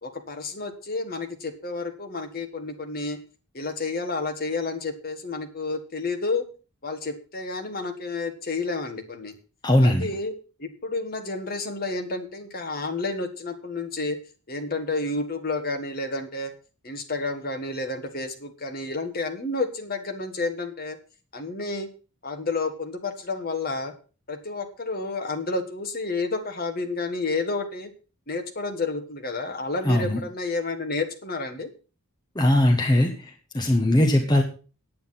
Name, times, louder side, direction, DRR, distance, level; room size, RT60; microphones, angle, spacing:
voice 1, 0.0-3.2 3.5-6.4 6.8-9.3 9.8-10.3 10.6-14.2 14.5-16.5 16.8-21.0 21.3-21.9 22.2-23.9 24.3-27.9 28.3-31.7, left 3 dB, 40° left, 6 dB, 1.6 m, -30 dB
voice 2, 9.6-10.1 29.8-30.2 32.3-34.4, left 1 dB, 20° left, 3 dB, 1.1 m, -20 dB
9.4 x 8.7 x 5.8 m, 0.35 s
head